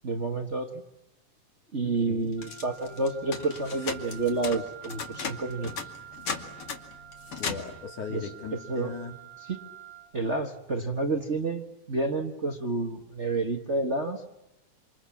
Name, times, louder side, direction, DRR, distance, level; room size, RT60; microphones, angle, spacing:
voice 1, 0.0-0.8 1.7-5.7 8.1-8.3 8.7-8.9 9.5-9.6 10.1-14.2, right 3 dB, 30° right, 3 dB, 1.5 m, -29 dB
voice 2, 1.8-2.3 7.4-9.2, left 5 dB, 85° left, 3 dB, 4.7 m, -38 dB
sound 1, 2.3-7.8, left 5 dB, 50° left, 3.1 m, -37 dB
Wind instrument woodwind instrument, 2.4-10.1, right 12 dB, 90° right, 4.7 m, -47 dB
28.0 x 27.5 x 7.3 m, 0.88 s
omnidirectional pair, 3.4 m